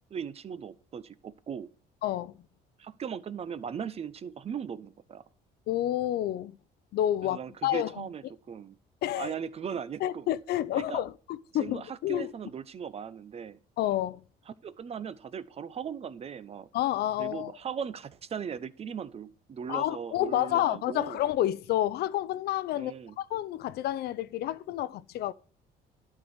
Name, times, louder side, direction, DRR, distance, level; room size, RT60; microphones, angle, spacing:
voice 1, 0.1-1.7 2.8-5.2 7.2-8.7 9.1-10.3 10.7-11.0 11.6-13.6 14.6-16.7 17.2-21.2 22.7-23.2, right 7 dB, 35° right, 0.8 m, -38 dB
voice 2, 2.0-2.4 5.7-6.6 6.9-8.1 9.0-9.3 10.0-12.3 13.8-14.2 16.7-17.5 19.7-25.3, left 13 dB, 70° left, 0.6 m, -29 dB
11.5 x 4.7 x 8.1 m
cardioid pair, 110°, 17 cm